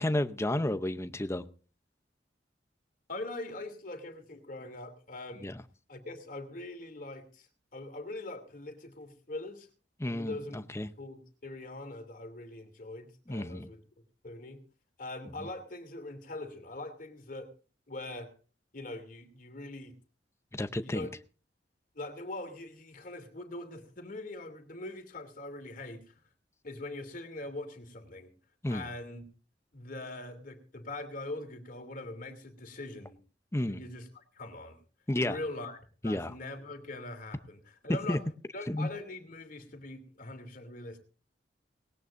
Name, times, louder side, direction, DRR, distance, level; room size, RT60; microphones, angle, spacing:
voice 1, 0.0-1.4 5.4-5.6 10.0-10.9 13.3-13.7 20.5-21.1 28.6-28.9 33.5-33.8 35.1-35.4 36.0-36.3 38.1-38.2 38.7-38.9, left 1 dB, 15° left, 0.7 m, -31 dB
voice 2, 3.1-5.5 5.9-9.7 10.0-10.6 11.0-13.8 14.2-14.6 15.0-17.5 17.9-18.3 18.7-19.9 20.8-21.1 21.9-26.1 26.6-28.3 28.7-29.2 29.7-33.2 33.7-34.8 35.1-38.2 38.5-41.0, left 2 dB, 50° left, 2.8 m, -42 dB
19.5 x 17.5 x 2.6 m
head